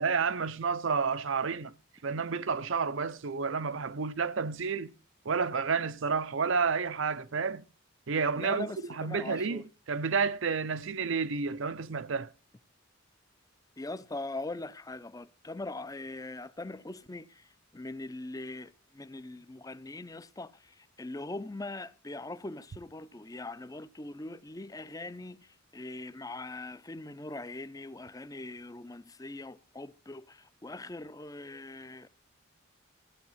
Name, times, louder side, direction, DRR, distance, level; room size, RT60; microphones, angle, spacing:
voice 1, 0.0-1.7 2.0-4.9 5.2-7.6 8.1-12.3, right 5 dB, 65° right, 0.6 m, -30 dB
voice 2, 8.3-9.7 13.8-32.1, left 2 dB, 15° left, 0.5 m, -41 dB
15.0 x 8.3 x 5.6 m
head